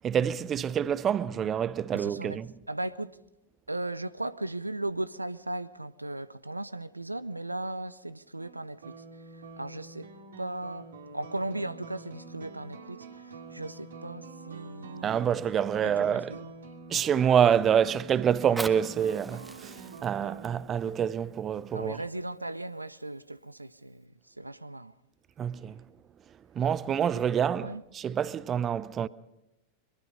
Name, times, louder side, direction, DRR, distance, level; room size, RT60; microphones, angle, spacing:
voice 1, 0.0-2.5 15.0-16.3 16.9-22.0 25.4-25.8 26.6-29.1, right 8 dB, 25° right, 0.6 m, -27 dB
voice 2, 1.9-2.4 2.7-3.2 3.7-9.0 9.3-10.1 10.4-15.3 15.8-16.5 20.8-20.9 21.7-24.1 24.4-24.9 27.1-27.2 27.6-27.8, right 2 dB, 85° right, 0.7 m, -37 dB
sound 1, 8.4-20.6, right 3 dB, 65° right, 2.7 m, -46 dB
Fire, 18.3-23.3 23.9-24.0, right 2 dB, 10° right, 1.5 m, -44 dB
23.5 x 22.5 x 5.3 m
figure-of-eight pair, 90°, 0 cm